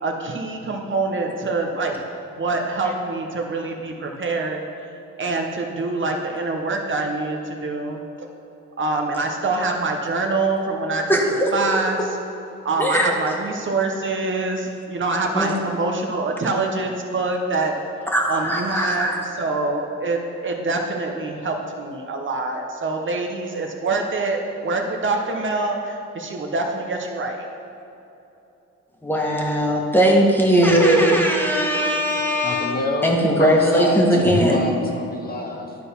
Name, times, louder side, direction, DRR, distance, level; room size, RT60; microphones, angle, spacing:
voice 1, 0.0-1.9 2.4-4.6 5.2-8.3 8.8-12.2 12.6-17.8 18.3-27.4, right 3 dB, 40° right, 2 dB, 0.9 m, -25 dB
voice 2, 11.1-11.5 12.8-13.1 15.3-15.5 18.1-19.2 29.0-32.7 33.0-34.6, equal, 5° left, -1 dB, 1.5 m, -19 dB
voice 3, 32.4-35.7, left 2 dB, 30° left, 1 dB, 0.7 m, -28 dB
11.5 x 4.0 x 5.4 m, 2.9 s
cardioid pair, 90°, 30 cm